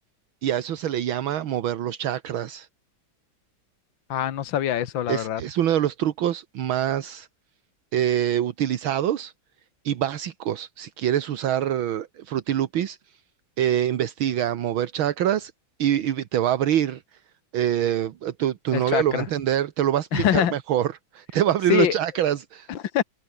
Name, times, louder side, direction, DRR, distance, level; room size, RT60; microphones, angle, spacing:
voice 1, 0.4-2.7 5.1-7.3 7.9-9.3 9.8-13.0 13.6-15.5 15.8-17.0 17.5-22.7, right 11 dB, 75° right, 2.0 m, -25 dB
voice 2, 4.1-5.4 18.7-19.3 20.1-20.5 21.7-22.0 22.7-23.0, left 10 dB, 70° left, 2.0 m, -24 dB
omnidirectional pair, 2.3 m